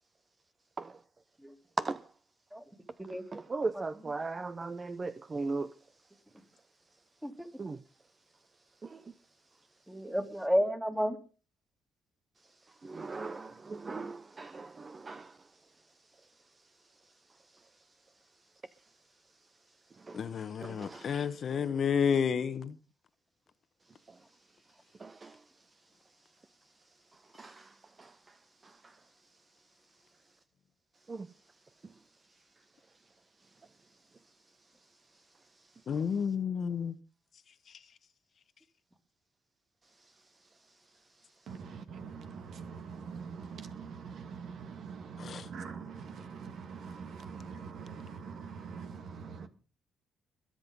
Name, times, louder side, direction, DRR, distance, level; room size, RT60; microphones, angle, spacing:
voice 1, 3.3-5.7 7.6-7.8 8.9-9.0 12.8-15.3 20.1-20.2 20.6-21.1 25.0-25.3 27.4-27.6 28.0-28.1 31.1-31.3, right 3 dB, 30° right, 0.8 m, -37 dB
voice 2, 9.9-11.2, equal, 5° right, 2.9 m, -31 dB
voice 3, 20.1-22.8 35.9-37.0 45.2-45.5, left 7 dB, 55° left, 1.2 m, -31 dB
voice 4, 41.5-49.5, right 6 dB, 65° right, 2.1 m, -44 dB
22.0 x 7.8 x 5.4 m
cardioid pair, 90°, 0 cm